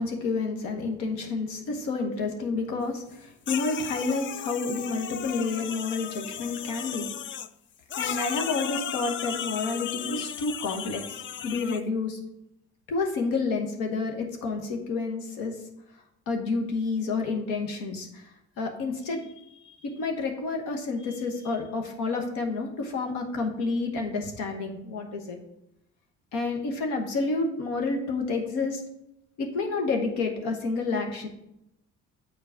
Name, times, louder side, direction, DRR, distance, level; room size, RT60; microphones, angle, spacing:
voice 1, 0.0-7.0 8.0-12.2 12.9-15.5 16.3-18.3 18.6-25.4 26.3-28.8 29.4-31.3, left 3 dB, 75° left, 3 dB, 1.1 m, -29 dB
sound 1, 3.5-7.5 7.9-11.8, left 9 dB, 35° left, 0.4 m, -35 dB
6.8 x 4.0 x 5.7 m, 0.82 s
hypercardioid pair, 55°, 34 cm